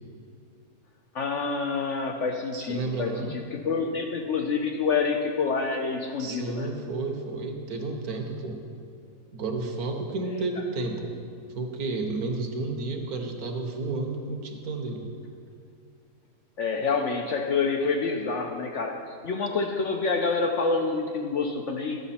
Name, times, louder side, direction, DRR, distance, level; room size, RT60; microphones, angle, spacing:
voice 1, 1.1-6.7 16.6-19.0 19.2-22.0, left 4 dB, 65° left, 3 dB, 0.8 m, -27 dB
voice 2, 2.5-3.4 6.2-8.7 9.3-11.1 11.5-15.1, right 3 dB, 70° right, 3 dB, 1.4 m, -31 dB
12.0 x 6.8 x 4.2 m, 2.4 s
omnidirectional pair, 1.7 m